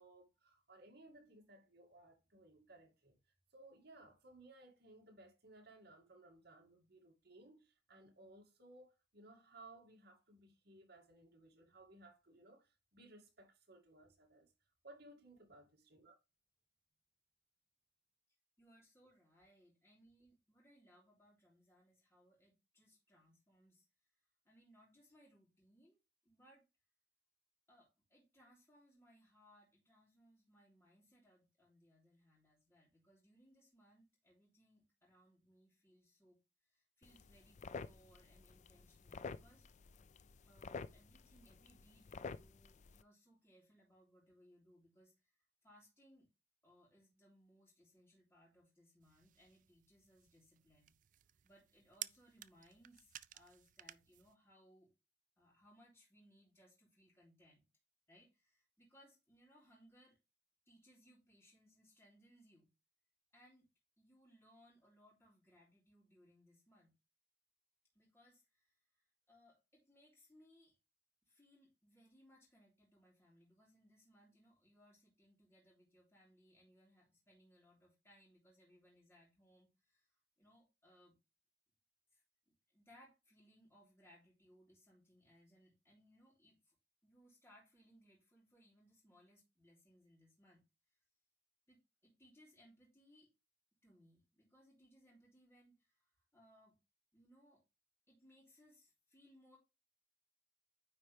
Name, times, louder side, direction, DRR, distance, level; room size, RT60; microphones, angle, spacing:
voice 1, 0.0-3.2 3.5-14.5 14.8-16.2, right 2 dB, 65° right, 2.3 m, -61 dB
voice 2, 18.6-23.8 24.4-26.0 26.2-26.7 27.7-36.4 36.7-39.7 40.4-46.3 46.6-50.9 51.4-54.9 55.4-57.7 58.1-60.2 60.7-62.7 63.3-63.7 64.0-66.9 67.9-70.7 71.3-80.1 80.4-81.1 82.1-82.2 82.7-86.7 87.0-90.6 91.7-93.3 93.8-96.8 97.1-97.6 98.1-99.6, equal, 15° left, 3.0 m, -68 dB
sound 1, 37.0-43.0, left 4 dB, 40° left, 0.4 m, -51 dB
sound 2, 49.0-54.3, right 14 dB, 45° right, 0.3 m, -54 dB
9.4 x 4.4 x 3.4 m
head